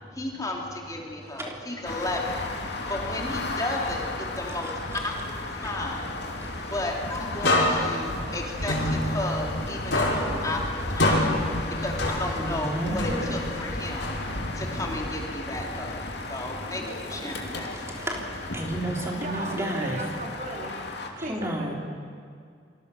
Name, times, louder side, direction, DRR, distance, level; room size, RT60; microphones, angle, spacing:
voice 1, 0.2-2.4 2.9-4.7 5.0-6.1 6.7-11.3 11.8-14.1 14.6-17.7, left 1 dB, 20° left, 0 dB, 2.9 m, -33 dB
voice 2, 1.0-1.8 2.7-2.8 4.5-5.0 5.6-5.7 6.4-6.7 8.1-8.4 11.1-11.8 12.3-13.0 14.2-14.8 16.2-20.0 21.1-21.8, right 1 dB, 15° right, -1 dB, 3.5 m, -35 dB
sound 1, 1.8-21.1, left 2 dB, 65° left, 2.7 m, -34 dB
sound 2, 7.4-9.6 9.9-12.6 13.0-14.6, left 1 dB, 85° left, 5.6 m, -27 dB
voice 3, 19.1-20.8 21.2-21.8, right 1 dB, 45° right, 0 dB, 3.4 m, -36 dB
27.5 x 24.0 x 6.9 m, 2.2 s
head